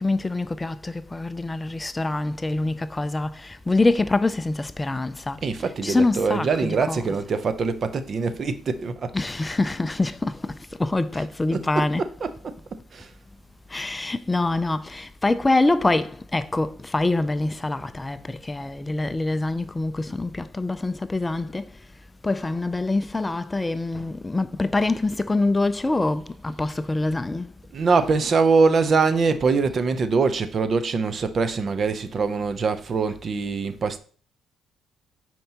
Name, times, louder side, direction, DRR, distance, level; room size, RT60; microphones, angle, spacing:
voice 1, 0.0-5.4 5.8-7.0 9.1-10.5 10.8-12.0 13.7-18.2 18.5-21.6 22.2-27.5, left 2 dB, 20° left, 0.4 m, -25 dB
voice 2, 5.4-9.2 11.1-13.1 27.7-34.0, right 4 dB, 50° right, 0.6 m, -23 dB
9.2 x 4.5 x 2.9 m
cardioid pair, 90°, 0 cm